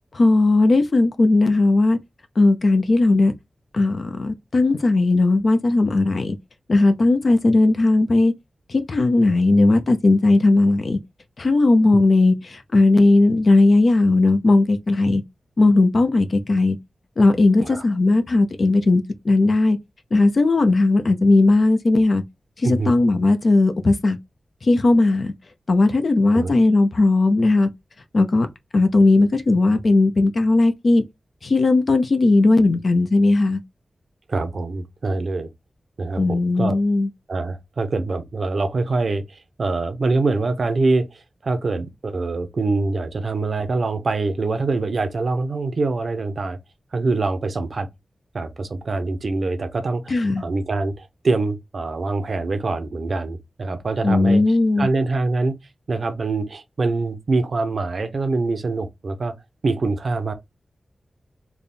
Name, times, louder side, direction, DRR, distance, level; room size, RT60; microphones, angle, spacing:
voice 1, 0.1-2.0 2.4-3.3 3.7-6.4 6.7-8.3 8.7-11.0 11.4-15.2 15.6-16.8 17.2-19.8 20.1-22.2 22.6-24.2 24.6-25.3 25.7-27.7 28.1-28.5 28.7-31.0 31.4-33.6 36.2-37.1 50.1-50.4 54.0-54.9, left 2 dB, 50° left, 0.6 m, -17 dB
voice 2, 34.3-35.5 36.0-36.8 37.3-46.6 46.9-47.9 48.3-54.4 54.8-55.6 55.9-59.3 59.6-60.3, right 3 dB, 55° right, 0.7 m, -24 dB
3.5 x 2.3 x 4.1 m
wide cardioid pair, 130°, 0 cm